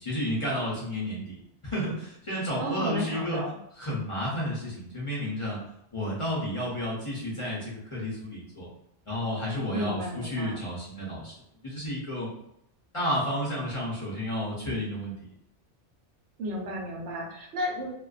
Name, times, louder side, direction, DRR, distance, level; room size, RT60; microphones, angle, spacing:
voice 1, 0.0-3.4 3.8-5.6 5.9-8.7 9.1-11.3 11.6-12.3 12.9-15.1, equal, 35° left, -6 dB, 0.6 m, -31 dB
voice 2, 2.6-3.6 9.7-10.6 16.4-17.9, equal, 85° right, 0 dB, 1.0 m, -33 dB
2.4 x 2.2 x 2.3 m, 0.77 s
omnidirectional pair, 1.1 m